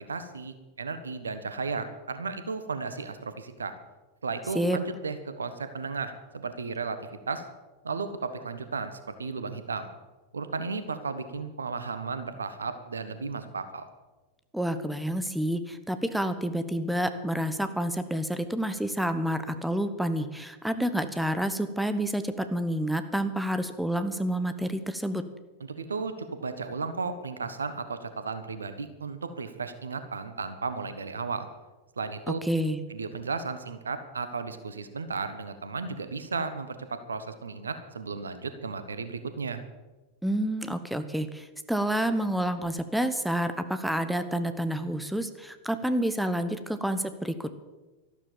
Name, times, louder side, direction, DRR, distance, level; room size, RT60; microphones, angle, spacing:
voice 1, 0.0-3.7 4.2-7.4 7.8-9.9 10.3-13.8 25.7-31.5 32.0-32.4 32.9-39.6, right 4 dB, 75° right, 11 dB, 1.3 m, -34 dB
voice 2, 14.5-25.2 32.3-32.8 40.2-47.5, right 1 dB, ahead, 10 dB, 1.0 m, -29 dB
13.0 x 12.5 x 7.1 m, 1.2 s
figure-of-eight pair, 90°, 0 cm